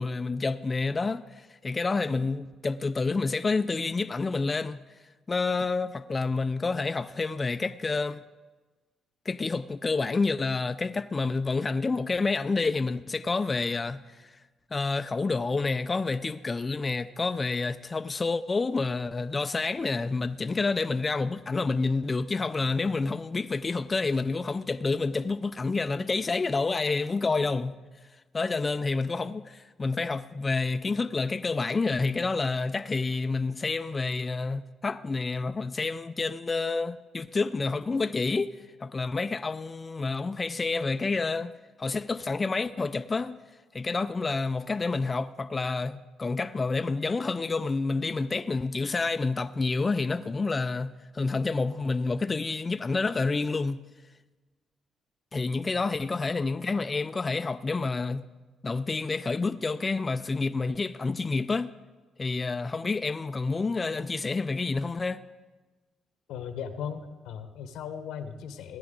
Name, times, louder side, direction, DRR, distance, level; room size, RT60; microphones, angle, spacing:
voice 1, 0.0-4.8 5.3-8.2 9.3-14.3 14.7-27.7 28.3-38.5 38.8-43.4 43.7-53.8 55.3-58.3 58.6-61.7 62.2-65.3, left 3 dB, 30° left, 0.4 m, -29 dB
voice 2, 66.3-68.8, left 7 dB, 90° left, 1.0 m, -37 dB
16.0 x 10.5 x 3.8 m
cardioid pair, 90°, 0 cm